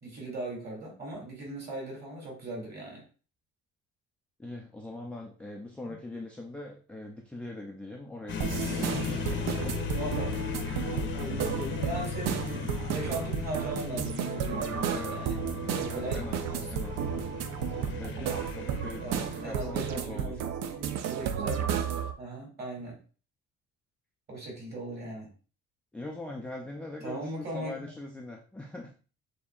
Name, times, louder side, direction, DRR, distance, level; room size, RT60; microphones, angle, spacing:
voice 1, 0.0-3.0 9.5-10.3 10.9-15.4 15.7-16.8 19.0-21.7 22.2-23.0 24.3-25.3 27.0-27.9, right 1 dB, 35° right, -2 dB, 2.3 m, -38 dB
voice 2, 4.4-10.2 14.9-15.3 15.9-16.4 16.7-17.0 18.0-20.3 25.9-28.9, left 2 dB, 5° left, 0 dB, 0.3 m, -42 dB
sound 1, 8.3-20.0, left 6 dB, 40° left, 0.7 m, -37 dB
sound 2, 8.4-22.1, right 8 dB, 60° right, 0.5 m, -33 dB
6.7 x 2.7 x 2.3 m, 0.36 s
cardioid pair, 150°, 29 cm